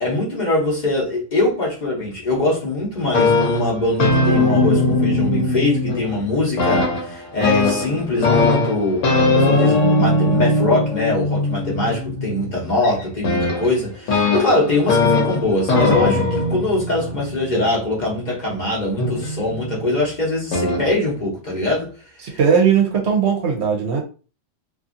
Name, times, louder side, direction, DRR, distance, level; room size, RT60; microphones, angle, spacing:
voice 1, 0.0-21.9 22.2-22.4, left 2 dB, 40° left, 0.9 m, -22 dB
sound 1, 3.0-6.2 6.6-18.1 19.0-19.8 20.5-20.9, left 2 dB, 75° left, 1.1 m, -20 dB
voice 2, 22.2-24.0, right 7 dB, 65° right, 0.8 m, -18 dB
2.6 x 2.6 x 2.5 m
omnidirectional pair, 1.3 m